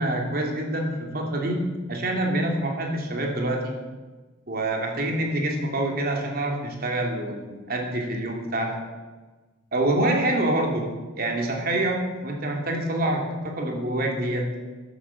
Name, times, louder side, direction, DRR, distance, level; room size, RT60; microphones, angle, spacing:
voice 1, 0.0-1.6 1.9-3.8 4.5-8.8 9.7-14.5, right 1 dB, 50° right, 1 dB, 3.1 m, -26 dB
13.5 x 11.0 x 7.3 m, 1.3 s
head